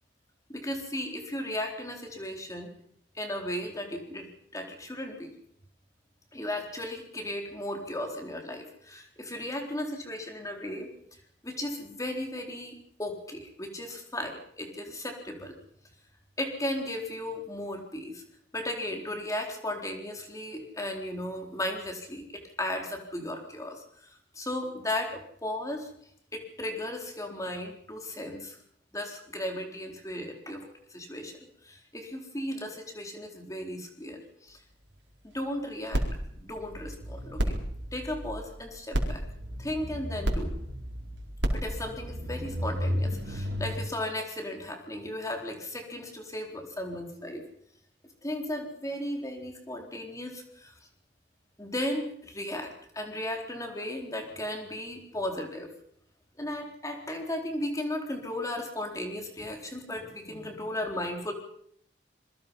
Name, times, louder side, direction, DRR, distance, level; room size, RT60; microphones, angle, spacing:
voice 1, 0.5-2.7 3.1-5.3 6.3-10.9 11.4-15.5 16.4-18.2 18.5-25.9 26.3-28.6 28.9-31.3 31.6-34.6 35.2-36.0 36.3-37.6 37.9-39.2 39.6-40.5 41.5-47.4 48.2-50.7 51.6-55.7 56.4-61.3, left 1 dB, 20° left, 3 dB, 4.1 m, -35 dB
sound 1, 35.9-43.7, equal, 75° right, 4.3 m, -32 dB
27.0 x 22.5 x 5.6 m, 0.66 s
head